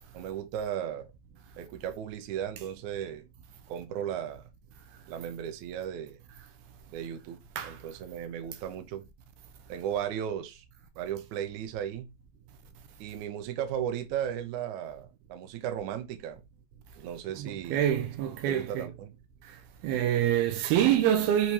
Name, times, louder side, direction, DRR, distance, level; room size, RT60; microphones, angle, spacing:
voice 1, 0.1-1.1 1.6-3.3 3.7-4.4 5.1-6.2 6.9-7.4 7.6-9.0 9.7-10.6 11.0-12.1 13.0-16.4 17.0-17.9 18.5-19.1, right 9 dB, 65° right, 2.2 m, -35 dB
voice 2, 17.4-18.8 19.8-21.5, right 11 dB, 90° right, 2.9 m, -26 dB
7.8 x 3.7 x 4.2 m
omnidirectional pair, 4.2 m